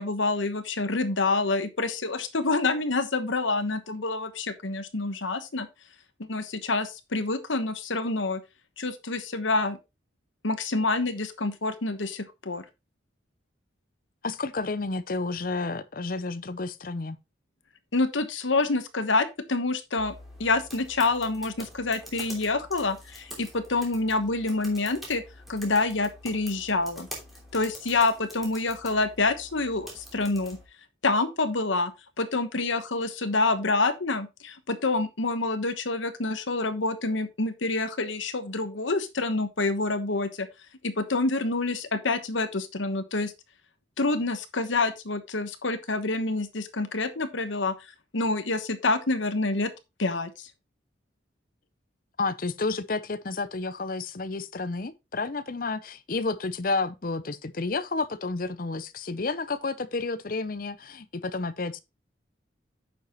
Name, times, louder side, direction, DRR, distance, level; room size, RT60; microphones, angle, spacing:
voice 1, 0.0-5.7 6.2-8.4 8.8-9.8 10.4-12.6 17.9-25.2 25.5-27.1 27.5-30.6 31.0-31.9 32.2-40.5 40.8-43.3 44.0-47.7 48.1-49.7 50.0-50.5, left 3 dB, 85° left, 1.2 m, -27 dB
voice 2, 14.2-17.2 52.2-61.8, left 3 dB, 45° left, 0.7 m, -31 dB
sound 1, 20.0-30.6, equal, ahead, 3.0 m, -46 dB
9.2 x 6.8 x 3.1 m
head